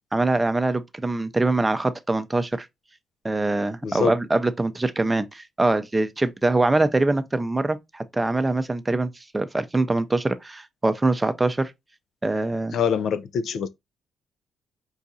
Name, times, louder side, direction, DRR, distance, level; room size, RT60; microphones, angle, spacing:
voice 1, 0.1-2.7 3.2-9.1 9.3-11.7 12.2-12.8, right 2 dB, 15° right, 0.5 m, -23 dB
voice 2, 3.8-4.1 12.7-13.7, left 7 dB, 65° left, 0.4 m, -24 dB
4.7 x 2.5 x 4.0 m
cardioid pair, 95°, 0 cm